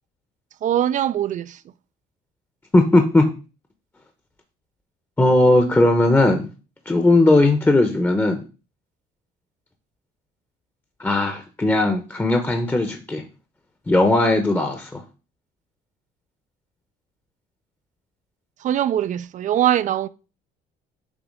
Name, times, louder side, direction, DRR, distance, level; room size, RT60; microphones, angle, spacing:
voice 1, 0.6-1.6 18.6-20.1, right 11 dB, 50° right, 0.4 m, -22 dB
voice 2, 2.7-3.2 5.2-6.5 6.9-8.4 11.0-13.2 13.9-15.0, left 2 dB, 10° left, 0.8 m, -18 dB
7.1 x 2.8 x 5.3 m
cardioid pair, 110°, 17 cm